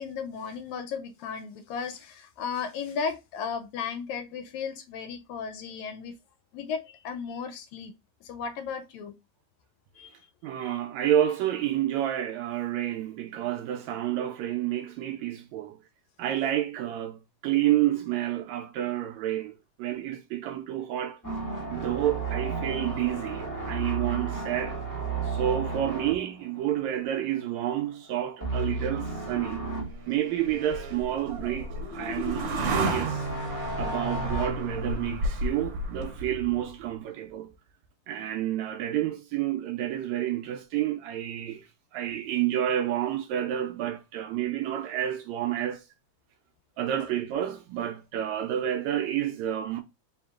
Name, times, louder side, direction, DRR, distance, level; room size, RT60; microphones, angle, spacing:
voice 1, 0.0-6.2 6.5-7.9 8.2-9.2 10.0-10.1 10.6-10.8, left 6 dB, 80° left, 1.8 m, -35 dB
voice 2, 10.4-15.8 16.2-21.2 21.7-24.8 25.2-29.6 30.1-33.3 33.8-37.5 38.1-45.8 46.8-49.8, right 12 dB, 80° right, 1.7 m, -29 dB
sound 1, 21.2-27.3 27.6-27.9 28.4-29.9 30.4-30.5 32.6-34.5, right 3 dB, 15° left, 0.6 m, -33 dB
sound 2, 29.3-36.7, right 1 dB, 60° right, 1.3 m, -33 dB
4.3 x 3.6 x 2.3 m
omnidirectional pair, 3.5 m